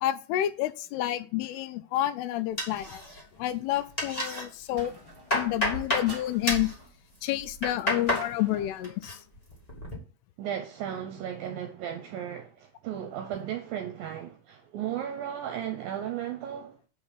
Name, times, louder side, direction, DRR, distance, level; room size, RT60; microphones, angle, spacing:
voice 1, 0.0-3.0 3.4-5.0 5.3-6.7 7.2-9.2, left 13 dB, 85° left, 2.6 m, -29 dB
sound 1, 2.6-3.4 3.7-4.4 4.9-6.1 6.4-6.7 7.4-8.3 8.6-9.1 9.5-9.9, left 1 dB, 20° left, 0.9 m, -30 dB
sound 2, 4.8-5.6 6.0-6.9 8.1-8.9, right 1 dB, 15° right, 0.7 m, -46 dB
voice 2, 10.4-16.8, right 10 dB, 75° right, 2.3 m, -35 dB
7.9 x 4.5 x 5.8 m
omnidirectional pair, 4.5 m